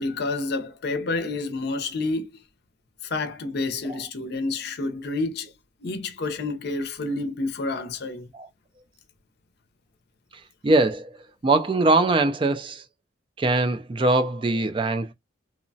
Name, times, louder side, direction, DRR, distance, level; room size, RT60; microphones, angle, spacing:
voice 1, 0.0-2.4 3.0-5.5 5.8-8.3, left 3 dB, 55° left, 0.6 m, -29 dB
voice 2, 10.6-11.1 11.4-12.8 13.4-15.1, right 2 dB, 25° right, 0.3 m, -21 dB
2.9 x 2.1 x 2.6 m
head